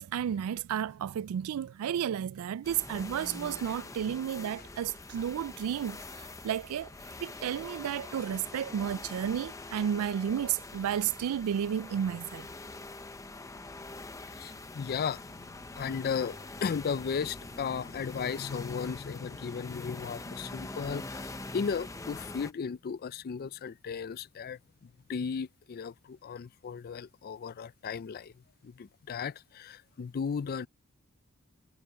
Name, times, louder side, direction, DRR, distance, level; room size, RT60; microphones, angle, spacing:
voice 1, 0.0-6.0 6.4-6.9 7.2-12.5, right 9 dB, 90° right, 0.3 m, -32 dB
sound 1, 2.6-22.5, left 2 dB, 15° left, 0.7 m, -44 dB
voice 2, 14.3-28.3 28.6-30.7, left 6 dB, 45° left, 0.4 m, -35 dB
head